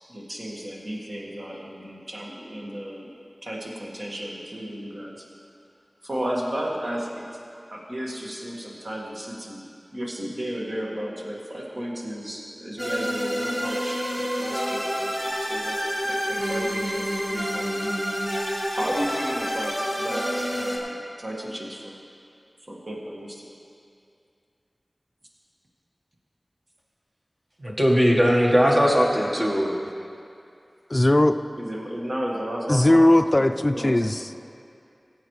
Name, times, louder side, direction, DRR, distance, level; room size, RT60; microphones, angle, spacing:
voice 1, 0.1-3.1 3.4-5.2 6.0-7.3 7.7-9.6 9.9-15.8 16.0-18.0 18.7-22.0 22.7-23.4 31.6-34.2, equal, 55° right, -3 dB, 1.7 m, -34 dB
sound 1, 12.8-20.8, equal, 15° right, 1.8 m, -28 dB
voice 2, 27.6-29.8, equal, 35° right, -1 dB, 1.4 m, -19 dB
voice 3, 30.9-31.4 32.7-34.5, left 1 dB, 35° left, 8 dB, 0.4 m, -19 dB
16.5 x 8.0 x 3.2 m, 2.5 s
wide cardioid pair, 55°, 0 cm